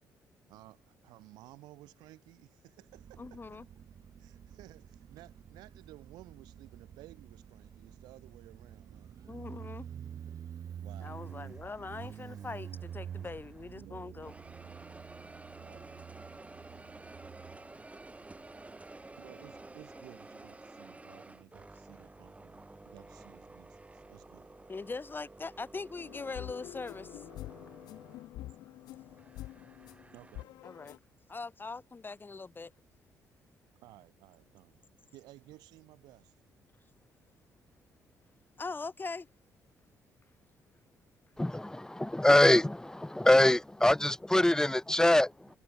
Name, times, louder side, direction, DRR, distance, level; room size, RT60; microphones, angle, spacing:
voice 1, 0.5-3.6 4.2-9.2 10.8-11.3 13.7-14.3 15.2-16.1 19.2-24.6 30.1-30.5 33.8-34.9 35.1-36.4, right 18 dB, 85° right, 1.8 m, -56 dB
Motorcycle, 2.9-20.1, right 9 dB, 60° right, 1.0 m, -48 dB
voice 2, 3.2-3.7 9.2-9.9 11.0-14.3 24.7-27.2 30.6-31.0 31.3-32.7 38.6-39.3, left 4 dB, 30° left, 1.7 m, -41 dB
sound 1, 11.0-13.8 14.2-30.4, right 2 dB, 20° right, 2.4 m, -52 dB
sound 2, 26.0-31.0, left 16 dB, 80° left, 0.4 m, -47 dB
voice 3, 41.4-45.5, left 1 dB, 10° left, 0.7 m, -24 dB
supercardioid pair, 60°, 7 cm